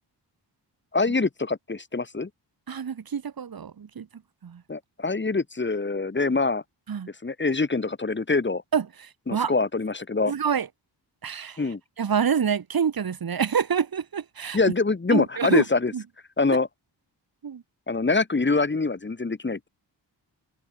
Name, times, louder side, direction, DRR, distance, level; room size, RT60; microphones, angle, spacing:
voice 1, 0.9-2.3 4.7-6.6 7.2-8.6 9.3-10.3 11.6-11.8 14.5-15.9 16.4-16.7 17.9-19.7, left 3 dB, 25° left, 2.6 m, -24 dB
voice 2, 2.7-4.1 4.4-4.6 6.9-7.1 8.7-9.5 10.3-10.7 11.2-11.6 12.0-14.6 15.1-15.6 15.9-16.0 17.4-17.6, right 7 dB, 55° right, 2.1 m, -27 dB
wide cardioid pair, 160°, 43 cm